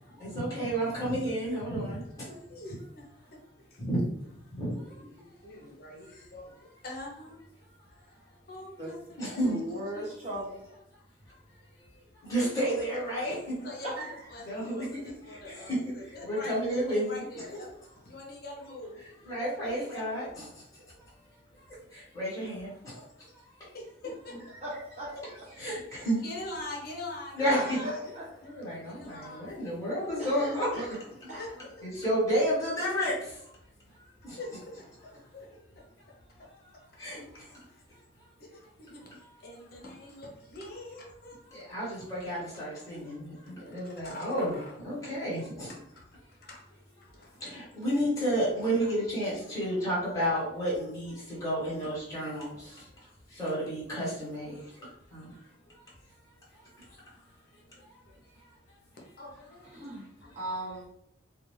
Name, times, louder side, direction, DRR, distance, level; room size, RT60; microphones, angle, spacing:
voice 1, 0.1-2.4 3.8-4.1 4.6-5.0 9.2-9.6 12.2-13.5 14.5-17.2 19.2-20.4 21.0-21.1 21.5-23.7 25.6-26.2 27.4-27.8 28.4-30.9 31.2-31.3 31.8-33.5 34.2-34.4 37.0-37.6 41.5-45.7 47.4-54.8 55.1-55.3 55.8-55.9 56.5-57.1 57.8-58.0 58.7-58.8, equal, 15° left, -8 dB, 1.1 m, -32 dB
voice 2, 2.2-3.1 3.3-3.4 3.7-3.9 4.8-7.4 8.5-10.8 12.6-12.9 13.6-17.7 18.0-19.0 19.7-20.5 23.7-24.5 25.7-25.8 26.1-28.2 28.8-29.7 31.3-31.7 34.4-34.9 35.3-35.5 38.4-41.4 42.5-43.0 43.6-44.7 45.5-46.0 46.5-46.6 47.0-47.5 48.7-48.9 50.7-50.8 52.5-52.7 57.7-58.2 59.2-59.7 60.2-60.5, left 2 dB, 50° left, -1 dB, 0.6 m, -44 dB
voice 3, 9.4-10.6 14.0-14.1 24.6-25.4 27.4-28.3 30.2-30.9 31.3-31.5 59.7-60.0 60.3-60.9, right 1 dB, 35° right, -7 dB, 1.0 m, -37 dB
2.4 x 2.2 x 3.1 m, 0.75 s
head